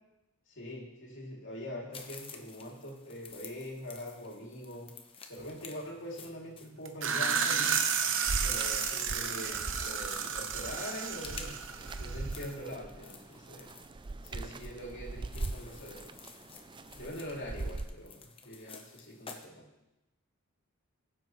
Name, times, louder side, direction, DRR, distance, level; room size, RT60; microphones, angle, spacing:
voice 1, 0.5-5.0 5.3-7.8 8.2-13.7 14.2-16.1 17.0-19.7, equal, 55° left, -2 dB, 2.8 m, -43 dB
sound 1, 1.9-19.5, left 5 dB, 25° left, 1.0 m, -51 dB
sound 2, 6.9-12.4, right 7 dB, 60° right, 0.9 m, -32 dB
sound 3, 8.3-17.8, right 2 dB, 20° right, 0.4 m, -41 dB
21.0 x 7.6 x 3.2 m, 0.97 s
head